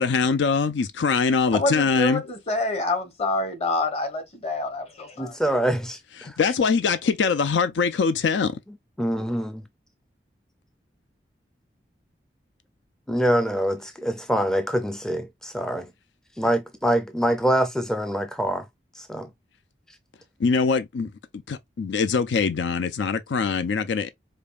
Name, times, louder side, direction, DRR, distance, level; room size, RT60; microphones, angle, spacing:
voice 1, 0.0-2.2 6.2-8.6 20.4-21.1 21.5-24.1, left 5 dB, 85° left, 0.4 m, -23 dB
voice 2, 1.5-5.4, left 2 dB, 35° left, 1.0 m, -27 dB
voice 3, 5.2-6.4 9.0-9.6 13.1-15.9 16.4-18.7 18.9-19.3, equal, 5° left, 0.4 m, -25 dB
5.1 x 2.3 x 2.4 m
head